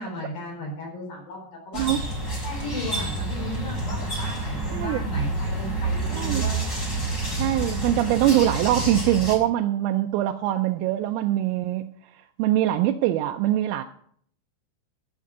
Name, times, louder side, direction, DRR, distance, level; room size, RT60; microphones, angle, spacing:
voice 1, 0.0-1.9 2.4-6.6, left 1 dB, 45° left, -2 dB, 5.9 m, -35 dB
sound 1, 1.7-9.3, right 2 dB, 20° left, 3.7 m, -28 dB
voice 2, 4.7-5.0 6.1-6.5 7.4-11.9 12.4-13.8, right 13 dB, 85° right, 4 dB, 3.3 m, -23 dB
13.0 x 6.4 x 8.1 m, 0.63 s
omnidirectional pair, 5.8 m